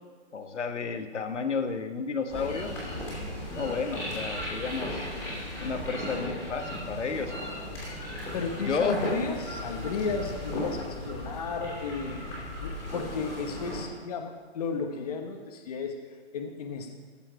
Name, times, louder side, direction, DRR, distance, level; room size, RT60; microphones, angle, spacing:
voice 1, 0.3-2.7 3.5-5.1 5.6-7.3 8.7-9.1, left 5 dB, 90° left, 6 dB, 1.3 m, -31 dB
sound 1, 2.3-13.8, left 1 dB, 5° left, 2.7 m, -36 dB
voice 2, 8.3-12.2 12.6-15.9 16.3-17.0, left 5 dB, 35° left, 4 dB, 1.1 m, -33 dB
15.0 x 7.4 x 4.8 m, 1.5 s
hypercardioid pair, 165°, 34 cm